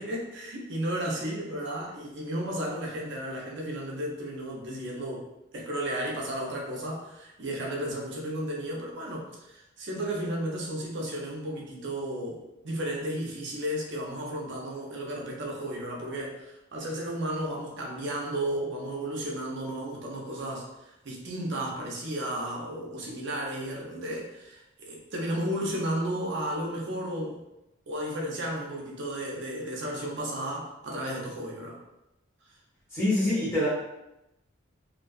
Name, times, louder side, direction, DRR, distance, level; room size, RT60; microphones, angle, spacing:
voice 1, 0.0-5.3 5.5-27.4 27.9-31.8, right 1 dB, 60° right, -2 dB, 0.6 m, -33 dB
voice 2, 32.9-33.7, left 1 dB, 15° left, -10 dB, 1.1 m, -25 dB
2.5 x 2.2 x 2.4 m, 0.91 s
head